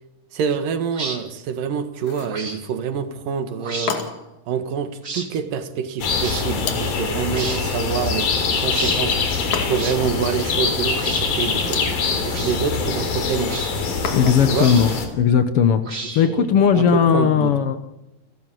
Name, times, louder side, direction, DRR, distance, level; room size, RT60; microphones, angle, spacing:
voice 1, 0.3-4.1 4.5-8.3 8.6-11.9 12.2-13.6 14.2-14.8 16.2-16.5 16.7-17.5, right 7 dB, 70° right, 3.2 m, -26 dB
sound 1, 0.9-1.2 2.3-2.6 3.6-3.9 5.0-5.3 6.2-6.5 7.3-7.6 8.7-9.0 9.7-10.0 10.9-11.3 12.3-12.6 13.5-13.7 14.6-15.0 15.8-16.4, right 3 dB, 25° right, 2.2 m, -31 dB
sound 2, 2.0-2.4 3.9-4.4 6.6-7.1 9.5-10.1 11.5-12.0 14.0-14.6, left 6 dB, 55° left, 3.4 m, -31 dB
sound 3, 6.0-15.1, left 5 dB, 70° left, 4.8 m, -24 dB
voice 2, 14.1-17.8, left 7 dB, 90° left, 1.2 m, -18 dB
29.5 x 13.0 x 7.8 m
omnidirectional pair, 4.2 m